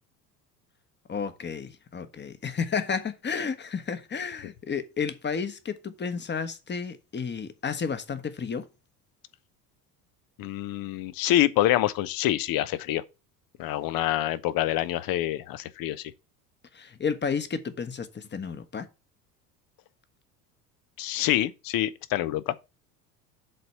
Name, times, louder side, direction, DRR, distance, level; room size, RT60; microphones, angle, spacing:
voice 1, 1.1-8.7 16.7-18.9, left 6 dB, 20° left, 1.3 m, -32 dB
voice 2, 10.4-13.0 13.6-16.0 21.0-22.5, left 14 dB, 45° left, 0.9 m, -26 dB
7.7 x 4.1 x 6.9 m
hypercardioid pair, 70°, 48 cm